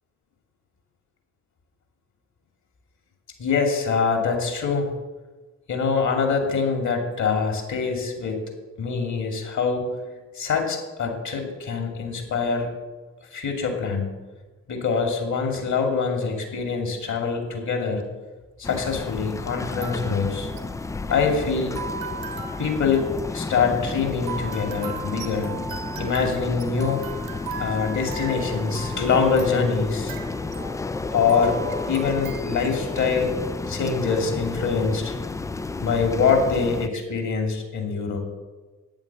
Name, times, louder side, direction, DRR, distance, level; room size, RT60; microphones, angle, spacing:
voice 1, 3.4-4.9 5.7-8.4 8.8-9.9 10.3-12.7 13.3-14.1 14.7-18.0 18.6-20.5 21.1-21.8 22.6-25.5 26.0-27.0 27.6-30.2 31.1-31.6 31.9-33.3 33.7-35.1 35.8-38.2, left 5 dB, 45° left, 3 dB, 2.7 m, -24 dB
sound 1, 16.7-17.2 18.0-18.1 19.6-32.4, right 6 dB, 75° right, 1.4 m, -38 dB
sound 2, 18.6-36.9, left 3 dB, 10° left, 0.4 m, -32 dB
9.1 x 9.0 x 6.9 m, 1.3 s
figure-of-eight pair, 45°, 40 cm